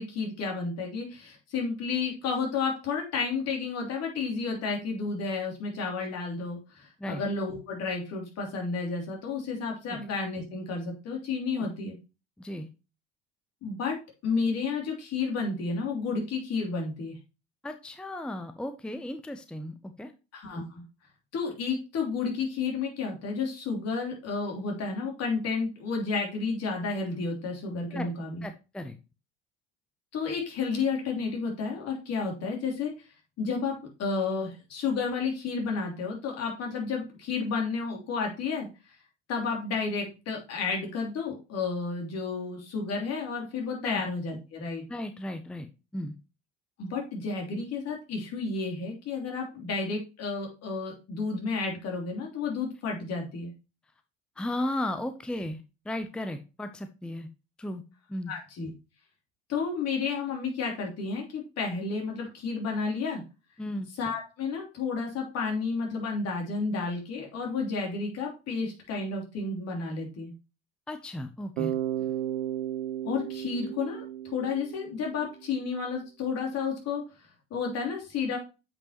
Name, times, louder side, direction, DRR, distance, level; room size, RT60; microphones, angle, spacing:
voice 1, 0.0-11.9 13.6-13.9 14.2-17.1 20.3-20.8 21.3-28.4 30.1-32.9 33.4-38.7 39.3-44.8 46.8-53.5 58.3-58.7 59.5-63.2 64.0-70.3 73.0-77.0 77.5-78.4, left 4 dB, 55° left, 0 dB, 3.2 m, -31 dB
voice 2, 12.4-12.7 17.6-20.1 27.9-28.1 28.4-29.0 43.8-44.0 44.9-46.1 54.4-57.3 57.6-57.8 58.1-58.3 63.6-63.9 70.9-71.7, left 1 dB, 5° left, 9 dB, 0.6 m, -35 dB
Bass guitar, 71.6-75.5, right 11 dB, 80° right, 0.7 m, -34 dB
8.5 x 5.4 x 2.9 m, 0.29 s
hypercardioid pair, 70°, 30 cm